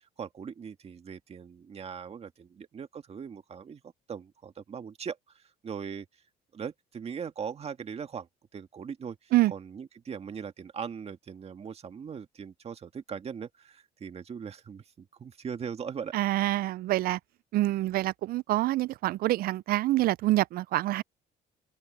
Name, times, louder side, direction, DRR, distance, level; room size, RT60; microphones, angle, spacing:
voice 1, 0.0-6.1 6.5-16.3, right 7 dB, 35° right, 1.9 m, -40 dB
voice 2, 16.1-17.2 17.5-21.0, right 16 dB, 60° right, 0.4 m, -26 dB
open air
cardioid pair, 110°, 17 cm